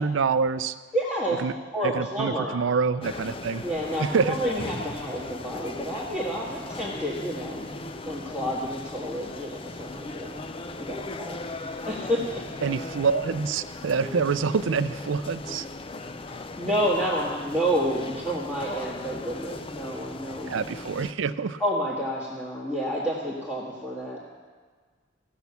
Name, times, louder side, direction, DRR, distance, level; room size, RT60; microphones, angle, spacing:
voice 1, 0.0-0.8 1.4-1.5 1.8-3.6 4.0-4.4 12.6-15.7 20.5-21.6, right 5 dB, 75° right, 14 dB, 0.4 m, -26 dB
voice 2, 0.9-1.4 1.7-2.5 3.6-7.6 8.0-10.4 10.8-12.4 16.6-20.6 21.6-24.2, equal, 10° left, -7 dB, 1.6 m, -29 dB
sound 1, 3.0-21.1, left 2 dB, 25° left, 0.4 m, -38 dB
16.5 x 6.1 x 7.0 m, 1.5 s
head